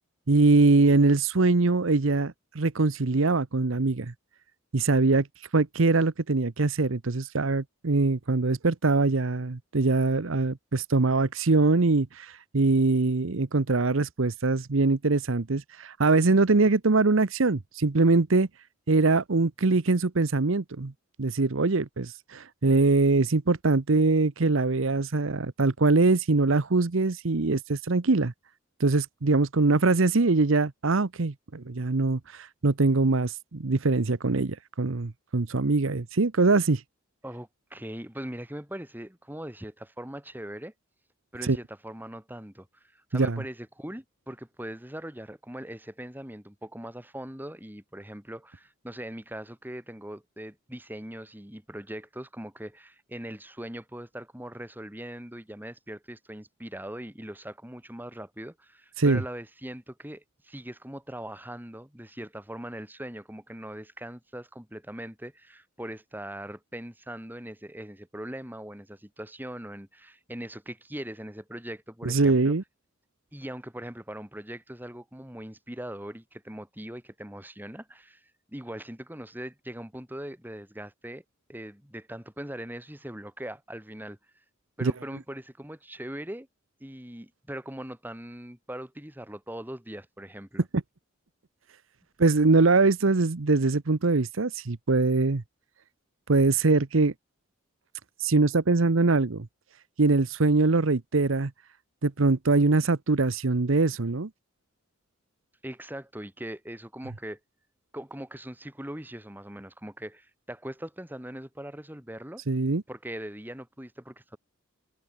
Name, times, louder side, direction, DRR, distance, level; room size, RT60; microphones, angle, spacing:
voice 1, 0.3-4.1 4.7-5.3 5.5-18.5 18.9-20.9 21.2-28.3 28.8-36.8 41.4-41.6 43.1-43.4 59.0-59.2 72.0-72.6 84.8-84.9 90.7-90.8 92.2-95.4 96.3-97.1 98.2-99.5 100.0-101.5 102.0-104.3 112.5-112.8, right 3 dB, 70° right, 0.9 m, -23 dB
voice 2, 37.2-40.7 41.3-42.7 42.9-72.5 73.3-81.2 81.5-84.2 84.8-86.5 86.8-90.6 105.6-107.4 107.9-112.4 112.9-114.4, right 1 dB, 10° right, 2.8 m, -40 dB
head